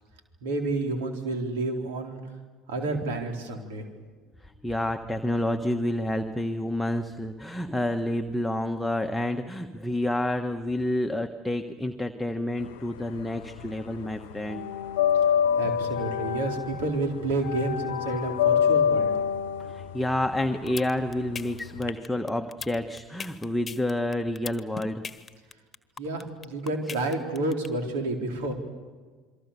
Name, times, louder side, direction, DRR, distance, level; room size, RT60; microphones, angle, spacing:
voice 1, 0.4-2.2 2.7-3.9 15.6-19.1 26.0-28.5, right 2 dB, 70° right, 3 dB, 4.1 m, -30 dB
voice 2, 4.6-14.6 19.7-25.0, left 1 dB, 5° left, 5 dB, 1.4 m, -29 dB
sound 1, 12.6-13.7 14.0-21.9, left 8 dB, 70° left, 1.0 m, -26 dB
sound 2, 20.4-27.7, left 6 dB, 25° left, 1.5 m, -38 dB
28.0 x 23.5 x 7.0 m, 1.4 s
figure-of-eight pair, 65°, 0 cm